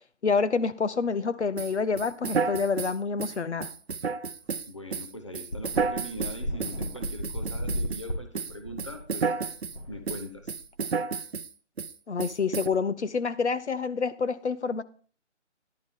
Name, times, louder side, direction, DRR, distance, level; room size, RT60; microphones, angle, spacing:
voice 1, 0.2-3.7 12.1-14.8, left 5 dB, 65° left, 0.8 m, -27 dB
sound 1, 1.6-8.1 8.3-9.8 10.1-11.5 11.8-11.9 12.2-12.7, right 5 dB, 60° right, 0.6 m, -31 dB
sound 2, 4.5-4.6 4.9-5.0 5.5-10.7, equal, 50° left, 2.4 m, -35 dB
voice 2, 4.7-9.3 9.9-10.6, equal, 25° left, 0.7 m, -41 dB
11.0 x 8.2 x 3.7 m
figure-of-eight pair, 175°, 36 cm